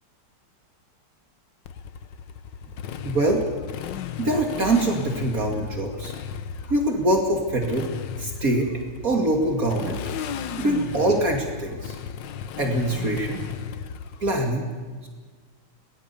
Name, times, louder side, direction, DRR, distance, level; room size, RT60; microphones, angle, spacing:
Motorcycle, 1.7-14.5, left 8 dB, 85° left, 1.6 m, -35 dB
voice 1, 3.0-3.4 4.2-6.1 6.7-7.9 8.2-8.7 9.0-10.0 10.6-12.0 12.6-13.4 14.2-14.7, right 1 dB, 50° right, 2 dB, 2.9 m, -23 dB
22.0 x 19.0 x 7.0 m, 1.5 s
omnidirectional pair, 1.9 m